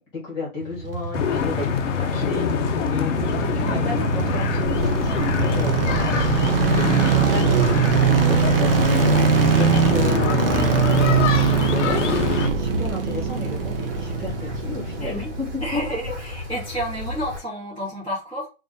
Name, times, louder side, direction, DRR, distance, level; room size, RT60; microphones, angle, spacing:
voice 1, 0.1-15.8 16.1-16.2, left 2 dB, 15° left, -4 dB, 1.6 m, -33 dB
sound 1, 0.6-15.9 16.1-16.2, right 8 dB, 45° right, 0.5 m, -23 dB
sound 2, 1.1-12.5, left 7 dB, 60° left, 0.6 m, -24 dB
voice 2, 3.6-3.9 9.6-9.8 15.0-15.3 15.6-18.5, equal, 10° right, -10 dB, 1.3 m, -31 dB
Wind, 4.6-17.4, left 2 dB, 30° right, 1.8 m, -31 dB
3.4 x 2.5 x 3.9 m, 0.30 s
hypercardioid pair, 175°, 40 cm